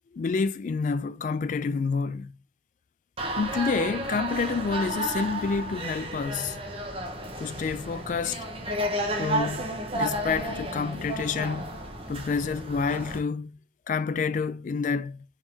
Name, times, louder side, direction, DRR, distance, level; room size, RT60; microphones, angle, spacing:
voice 1, 0.1-2.3 3.4-6.6 7.4-8.4 9.2-11.7 12.1-13.6 13.9-15.2, left 5 dB, 45° left, 0.3 m, -28 dB
sound 1, 3.2-13.2, right 1 dB, 30° right, 0.8 m, -32 dB
4.5 x 3.6 x 2.7 m
head